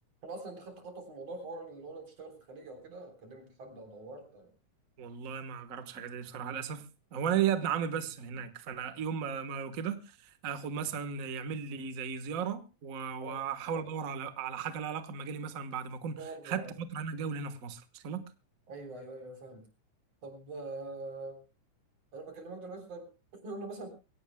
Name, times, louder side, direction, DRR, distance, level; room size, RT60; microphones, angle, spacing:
voice 1, 0.2-4.5 13.2-13.4 16.2-16.7 18.7-19.6 20.2-21.4 22.1-23.9, right 2 dB, 50° right, 4.6 m, -44 dB
voice 2, 5.0-16.2 16.4-18.3, right 7 dB, 75° right, 0.7 m, -35 dB
23.5 x 17.0 x 2.2 m
omnidirectional pair, 3.7 m